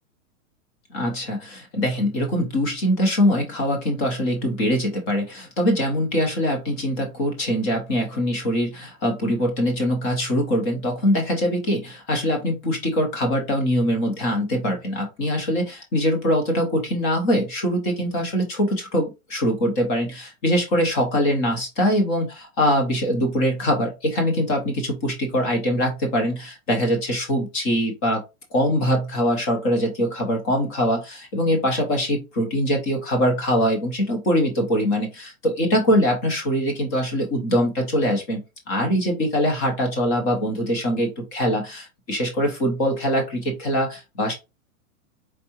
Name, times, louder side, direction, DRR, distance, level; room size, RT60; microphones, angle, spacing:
voice 1, 0.9-28.2 28.5-38.4 38.7-44.3, equal, 15° left, 3 dB, 0.6 m, -23 dB
4.6 x 3.2 x 2.8 m, 0.25 s
supercardioid pair, 180°, 41 cm